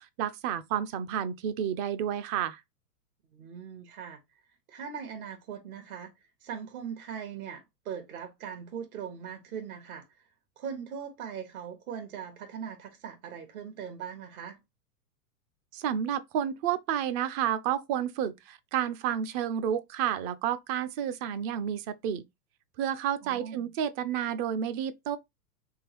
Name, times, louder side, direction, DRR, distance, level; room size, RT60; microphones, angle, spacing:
voice 1, 0.0-2.6 15.7-22.2 22.8-25.2, right 9 dB, 30° right, 0.4 m, -30 dB
voice 2, 3.3-4.2 4.7-6.1 6.4-10.1 10.6-14.6 23.2-23.7, right 7 dB, 65° right, 1.4 m, -40 dB
3.7 x 3.2 x 2.9 m
hypercardioid pair, 115°, 47 cm